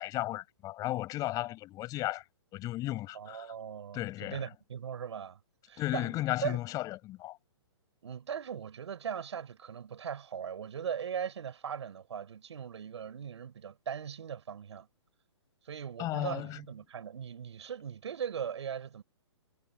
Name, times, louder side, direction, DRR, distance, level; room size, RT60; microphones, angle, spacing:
voice 1, 0.0-2.2 2.5-3.5 3.9-4.4 5.8-7.4 16.0-16.6, left 16 dB, 25° left, 6.5 m, -34 dB
voice 2, 3.1-5.4 5.7-6.6 8.0-14.9 15.6-19.0, right 8 dB, 70° right, 6.8 m, -39 dB
hypercardioid pair, 145°, 15 cm